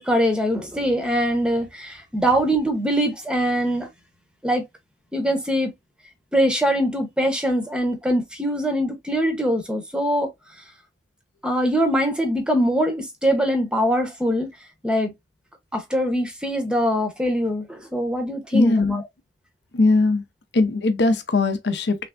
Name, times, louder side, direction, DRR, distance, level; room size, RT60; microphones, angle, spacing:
voice 1, 0.0-3.9 4.4-4.6 5.1-5.7 6.3-10.3 11.4-14.5 14.8-15.1 15.7-19.0, equal, 5° right, 0.7 m, -22 dB
voice 2, 18.5-19.0 19.7-20.2 20.5-22.1, left 3 dB, 70° left, 0.6 m, -20 dB
3.4 x 3.3 x 2.3 m
head